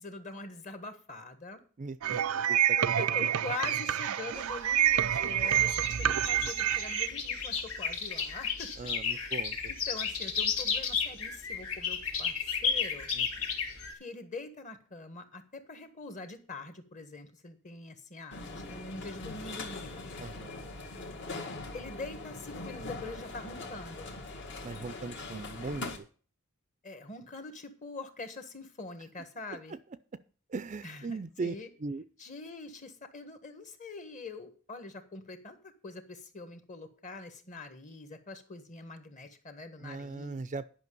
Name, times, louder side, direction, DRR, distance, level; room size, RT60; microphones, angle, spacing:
voice 1, 0.0-1.6 2.8-9.4 9.7-12.4 12.6-13.1 14.0-20.1 21.7-24.1 26.8-29.7 30.8-31.7 32.2-35.6 35.8-40.4, left 3 dB, 35° left, 8 dB, 1.5 m, -44 dB
voice 2, 1.8-3.0 8.8-9.6 13.2-13.3 20.2-20.6 24.6-26.1 29.5-29.6 30.5-31.5 31.8-32.0 39.8-40.6, right 4 dB, 35° right, 15 dB, 0.4 m, -39 dB
sound 1, 2.0-7.1, right 10 dB, 90° right, 0.5 m, -28 dB
sound 2, 4.4-13.9, left 6 dB, 75° left, 2.3 m, -33 dB
sound 3, 18.3-26.0, left 3 dB, 55° left, 1.8 m, -41 dB
10.5 x 5.8 x 6.9 m, 0.41 s
head